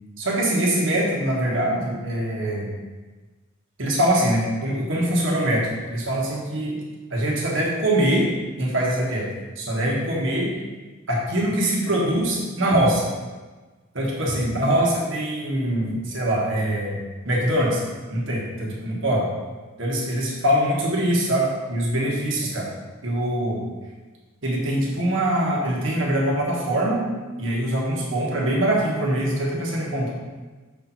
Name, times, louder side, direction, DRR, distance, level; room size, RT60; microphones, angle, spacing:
voice 1, 0.2-2.7 3.8-6.8 7.1-8.3 8.6-9.3 9.6-10.5 11.1-13.1 13.9-17.8 18.1-19.3 19.8-22.7 23.0-23.6 24.4-27.0 27.4-30.1, right 1 dB, 60° right, -3 dB, 1.6 m, -23 dB
6.8 x 4.5 x 4.2 m, 1.3 s
head